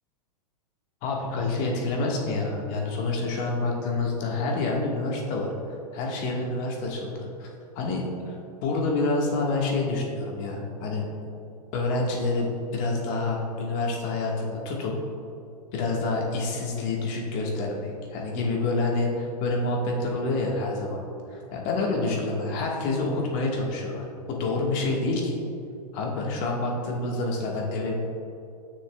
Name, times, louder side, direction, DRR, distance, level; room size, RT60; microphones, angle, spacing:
voice 1, 1.0-5.5 5.9-7.5 7.7-8.4 8.6-11.1 11.7-14.9 15.7-21.0 21.3-25.3 25.9-28.0, left 2 dB, 40° left, -1 dB, 1.5 m, -27 dB
9.9 x 6.3 x 2.3 m, 2.8 s
hypercardioid pair, 115°, 20 cm